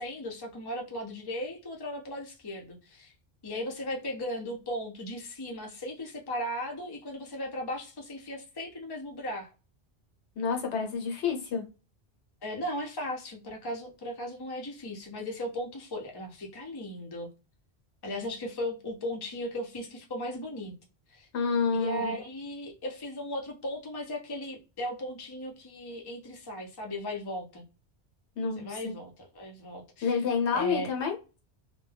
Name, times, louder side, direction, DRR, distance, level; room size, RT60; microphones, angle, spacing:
voice 1, 0.0-3.1 3.4-9.5 12.4-17.3 18.0-20.7 21.1-21.3 21.7-27.6 28.6-30.2 30.5-30.9, left 1 dB, 30° left, 0.5 m, -37 dB
voice 2, 10.4-11.6 21.3-22.2 28.4-28.9 30.0-31.2, left 5 dB, 85° left, 1.0 m, -29 dB
2.2 x 2.1 x 3.2 m
omnidirectional pair, 1.1 m